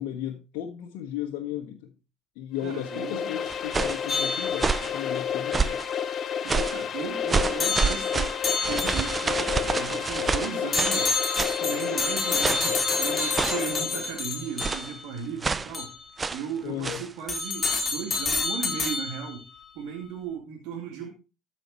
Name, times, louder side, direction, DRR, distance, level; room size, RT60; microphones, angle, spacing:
voice 1, 0.0-1.9 2.3-5.8 16.6-17.0, left 11 dB, 70° left, 2 dB, 1.3 m, -35 dB
sound 1, 2.6-14.2, left 8 dB, 45° left, 0.8 m, -31 dB
voice 2, 2.6-3.3 6.4-8.3 8.6-11.2 11.6-15.9 16.3-19.4 19.7-21.1, right 7 dB, 70° right, 1 dB, 2.4 m, -36 dB
sound 2, 3.5-4.1 4.5-5.0 5.5-5.9 6.5-6.8 7.3-11.0 11.3-11.6 12.4-12.8 13.3-13.7 14.6-14.9 15.4-15.7 16.2-16.5 16.8-17.1, right 4 dB, 25° right, 0.6 m, -28 dB
sound 3, 4.1-5.0 7.6-9.4 10.7-15.1 15.7-16.0 17.3-19.4, left 3 dB, 30° left, 3.1 m, -29 dB
13.0 x 5.7 x 4.3 m, 0.30 s
hypercardioid pair, 65°, 0 cm